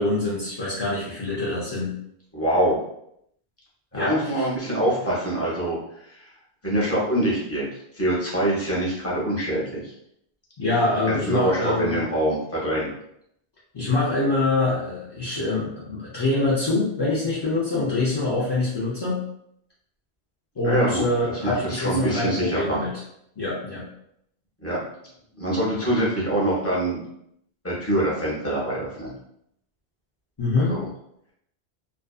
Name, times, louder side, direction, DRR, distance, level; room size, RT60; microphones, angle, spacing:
voice 1, 0.0-1.9 3.9-4.5 10.6-12.0 13.7-19.2 20.6-22.9 23.4-23.8 30.4-30.8, left 2 dB, 45° left, -7 dB, 0.3 m, -25 dB
voice 2, 2.3-2.8 3.9-5.8 6.0-6.2 6.6-9.9 11.0-12.9 20.6-21.0 21.4-22.8 24.6-24.8 25.4-27.0 27.6-29.1 30.5-30.9, right 1 dB, 15° left, -6 dB, 0.7 m, -24 dB
2.6 x 2.3 x 2.3 m, 0.75 s
omnidirectional pair, 1.1 m